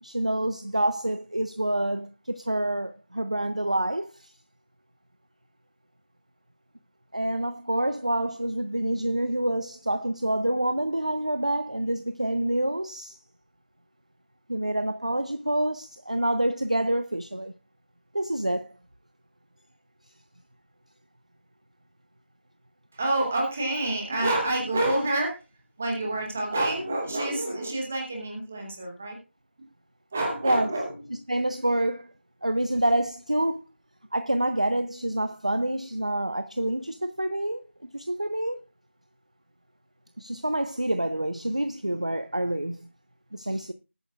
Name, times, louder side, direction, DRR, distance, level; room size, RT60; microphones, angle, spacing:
voice 1, 0.0-4.3 7.1-13.2 14.5-17.5 18.1-18.8 30.4-30.7 31.3-32.1 32.4-33.6 34.1-38.6 40.2-42.9 43.3-43.7, right 1 dB, 30° right, 0.5 m, -27 dB
voice 2, 22.9-25.4 25.8-29.2 30.1-31.2, right 2 dB, 5° right, 0.9 m, -28 dB
19.5 x 9.1 x 2.3 m
figure-of-eight pair, 175°, 7 cm